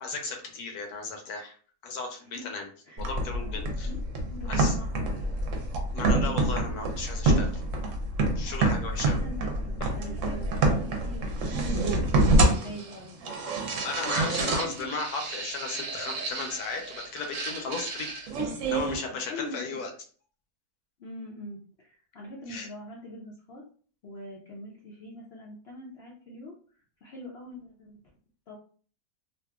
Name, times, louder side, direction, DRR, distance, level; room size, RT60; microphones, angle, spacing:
voice 1, 0.0-1.5 1.8-2.7 3.0-3.9 4.5-4.8 5.9-7.5 8.4-9.2 13.8-18.1 18.7-19.9 22.5-22.7, left 4 dB, 80° left, 3 dB, 1.2 m, -35 dB
sound 1, 3.0-19.0, right 2 dB, 65° right, 0.9 m, -27 dB
voice 2, 3.5-4.0 4.3-5.6 9.2-13.5 14.2-14.5 14.8-14.9 19.2-19.8 21.0-23.6 24.0-26.6 27.0-28.0 28.5-28.6, left 1 dB, 65° left, -3 dB, 0.6 m, -43 dB
2.8 x 2.4 x 2.3 m, 0.43 s
omnidirectional pair, 1.6 m